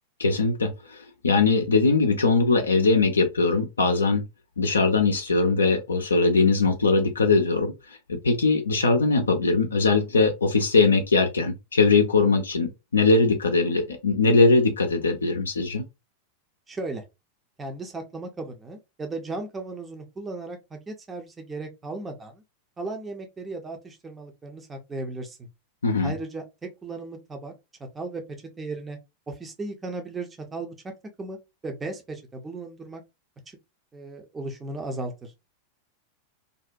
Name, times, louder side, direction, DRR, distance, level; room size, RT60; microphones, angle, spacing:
voice 1, 0.2-4.2 4.6-15.8 25.8-26.1, left 3 dB, 75° left, 0.4 m, -21 dB
voice 2, 16.7-17.0 17.6-22.4 22.8-25.5 26.0-27.5 27.8-29.0 29.3-30.9 31.2-31.4 31.6-33.0 33.5-33.6 33.9-35.3, right 2 dB, 15° right, 0.5 m, -36 dB
2.5 x 2.1 x 2.5 m
figure-of-eight pair, 90°, 0 cm